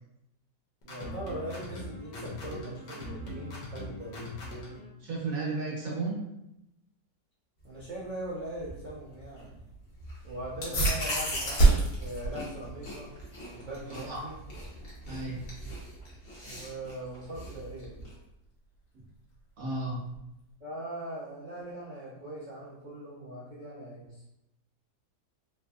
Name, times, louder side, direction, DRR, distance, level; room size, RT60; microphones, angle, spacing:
sound 1, 0.8-4.9, left 1 dB, 85° left, 1.4 m, -41 dB
voice 1, 0.8-4.2 7.6-9.7 10.2-13.1 13.5-14.4 16.4-18.0 20.6-24.2, right 1 dB, 85° right, -8 dB, 0.4 m, -40 dB
voice 2, 5.0-6.3 13.9-14.2 15.1-15.4 18.9-19.0 19.6-20.0, right 3 dB, 65° right, -3 dB, 1.0 m, -33 dB
sound 2, 7.6-18.1, equal, 45° left, 0.9 m, -41 dB
sound 3, 10.6-20.5, right 2 dB, 65° left, 1.5 m, -31 dB
3.3 x 2.7 x 2.3 m, 0.87 s
omnidirectional pair, 1.8 m